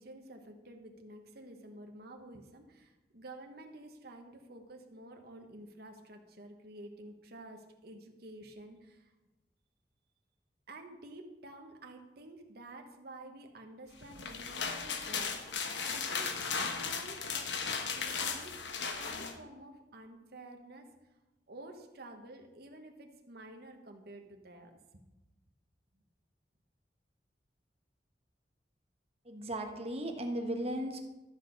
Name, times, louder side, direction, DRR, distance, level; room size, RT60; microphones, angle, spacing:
voice 1, 0.0-9.1 10.7-18.6 19.0-20.9 21.5-25.0, right 1 dB, 60° right, 4 dB, 1.2 m, -51 dB
sound 1, 14.0-19.3, left 5 dB, 85° left, 1.0 m, -36 dB
voice 2, 29.2-31.0, right 1 dB, 35° right, 4 dB, 1.1 m, -36 dB
13.0 x 6.0 x 5.2 m, 1.0 s
head